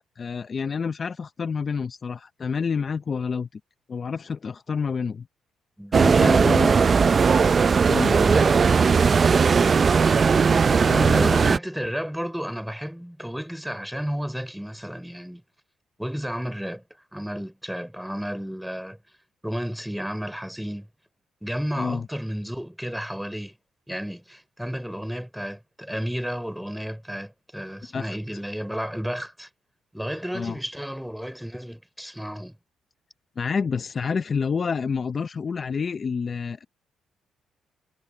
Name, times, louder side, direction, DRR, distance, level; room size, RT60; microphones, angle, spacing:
voice 1, 0.0-3.6 3.9-5.3 5.9-6.7 7.9-8.2 10.7-11.5 21.8-22.1 27.9-28.2 30.3-30.6 33.4-36.7, left 5 dB, 40° left, 0.6 m, -28 dB
voice 2, 5.8-6.9 8.0-8.6 10.9-15.4 16.0-16.8 17.1-19.0 19.4-20.9 21.4-23.5 23.9-29.5 29.9-32.6, equal, ahead, 5.0 m, -32 dB
sound 1, 5.9-11.6, right 5 dB, 40° right, 0.5 m, -18 dB
cardioid pair, 90°, 0 cm